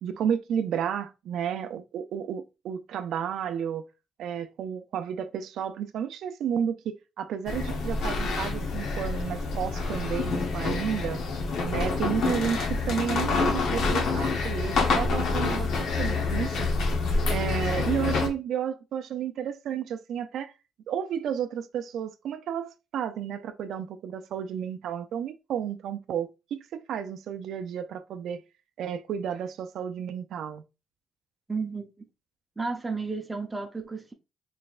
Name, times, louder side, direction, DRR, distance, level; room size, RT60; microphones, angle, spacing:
voice 1, 0.0-3.8 4.2-11.2 11.6-16.7 17.3-20.5 20.9-28.4 28.8-30.6, right 8 dB, 75° right, 0.4 m, -32 dB
sound 1, 7.5-18.3, left 4 dB, 75° left, 1.0 m, -27 dB
voice 2, 31.5-31.9 32.6-34.1, right 4 dB, 20° right, 0.7 m, -32 dB
4.2 x 3.3 x 2.4 m
cardioid pair, 90°, 0 cm